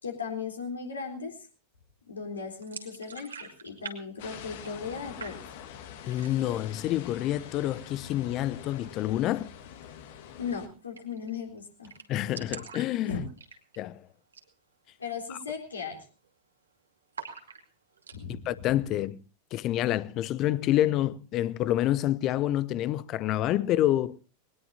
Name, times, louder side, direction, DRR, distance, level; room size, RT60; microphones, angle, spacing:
voice 1, 0.0-1.5 2.1-3.3 3.6-5.4 10.4-11.9 12.4-12.5 13.1-13.2 15.0-16.0 18.1-18.5, left 5 dB, 75° left, 3.8 m, -37 dB
sound 1, 2.6-4.9 5.2-5.8 6.1-6.6 7.0-7.1 7.4-8.0 9.7-9.9 10.2-10.3 10.5-10.6 10.9-11.3 11.6-11.7 11.8-13.9 14.2-14.5 14.9-15.0 15.5-15.8 16.0-16.6 17.1-18.2, right 5 dB, 75° right, 2.4 m, -44 dB
sound 2, 4.2-10.7, left 9 dB, 50° left, 1.8 m, -45 dB
voice 2, 6.0-9.5 12.1-13.2 13.8-14.0 15.3-15.4 18.3-19.2 19.5-24.2, left 13 dB, 35° left, 0.7 m, -28 dB
20.5 x 19.5 x 2.7 m
figure-of-eight pair, 90°, 0 cm